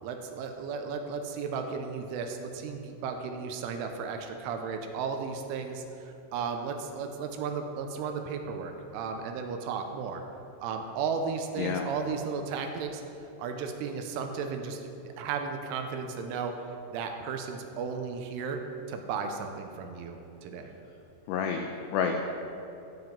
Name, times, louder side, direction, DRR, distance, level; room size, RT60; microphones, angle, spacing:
voice 1, 0.0-10.2 10.6-18.6 18.9-20.7, right 5 dB, 85° right, 5 dB, 3.2 m, -35 dB
voice 2, 21.3-22.2, left 6 dB, 90° left, 3 dB, 2.3 m, -29 dB
14.5 x 7.8 x 5.3 m, 2.8 s
omnidirectional pair, 5.7 m